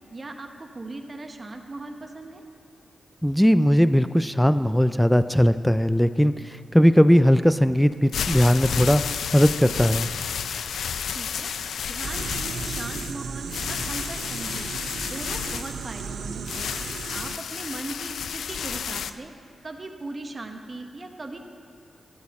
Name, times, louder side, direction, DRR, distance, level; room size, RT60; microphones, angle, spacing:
voice 1, 0.1-2.4 11.1-11.5 11.8-14.7 15.0-16.7 17.1-19.3 19.6-21.4, right 2 dB, 35° right, 4 dB, 1.1 m, -38 dB
voice 2, 3.2-10.1, equal, ahead, 12 dB, 0.3 m, -19 dB
sound 1, 7.9-19.1, left 7 dB, 90° left, 0.4 m, -31 dB
sound 2, 12.0-17.4, right 5 dB, 90° right, 0.5 m, -35 dB
14.0 x 10.5 x 4.2 m, 2.5 s
cardioid pair, 85°, 0 cm